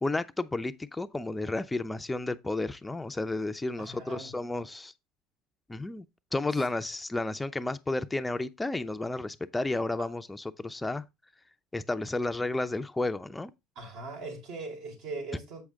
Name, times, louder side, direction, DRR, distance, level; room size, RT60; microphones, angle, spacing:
voice 1, 0.0-4.9 5.7-6.0 6.3-11.0 11.7-13.5, left 2 dB, 10° left, 0.5 m, -32 dB
voice 2, 3.8-4.3 13.7-15.6, right 3 dB, 65° right, 4.8 m, -40 dB
8.1 x 6.3 x 3.5 m
supercardioid pair, 105°, 0 cm